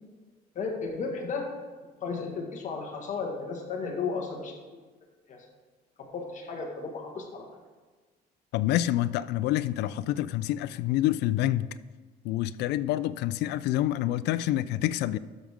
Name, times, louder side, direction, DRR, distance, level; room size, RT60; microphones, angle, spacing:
voice 1, 0.5-1.5 2.0-4.5 5.3-5.4 6.1-7.5, left 4 dB, 45° left, 1.8 m, -34 dB
voice 2, 8.5-11.7 12.2-15.2, left 13 dB, 80° left, 0.4 m, -27 dB
12.5 x 6.1 x 3.7 m
cardioid pair, 110°, 17 cm